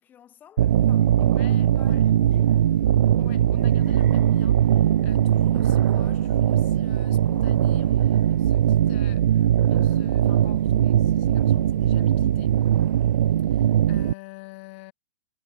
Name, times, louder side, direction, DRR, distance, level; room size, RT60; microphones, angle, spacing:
voice 1, 0.0-1.2 1.7-2.7, left 10 dB, 15° left, 6.4 m, -50 dB
sound 1, 0.6-14.1, right 10 dB, 75° right, 0.6 m, -20 dB
voice 2, 1.2-2.1 3.2-12.6 13.5-14.9, left 24 dB, 40° left, 3.1 m, -45 dB
hypercardioid pair, 160°, 11 cm